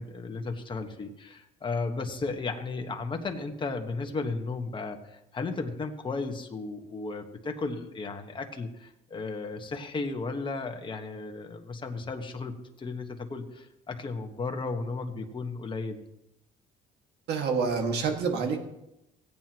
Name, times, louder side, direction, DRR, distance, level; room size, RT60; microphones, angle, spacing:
voice 1, 0.0-16.0, left 3 dB, 30° left, 4 dB, 1.4 m, -34 dB
voice 2, 17.3-18.6, right 5 dB, 80° right, 3 dB, 1.9 m, -27 dB
17.0 x 9.2 x 3.0 m, 0.87 s
cardioid pair, 110°, 17 cm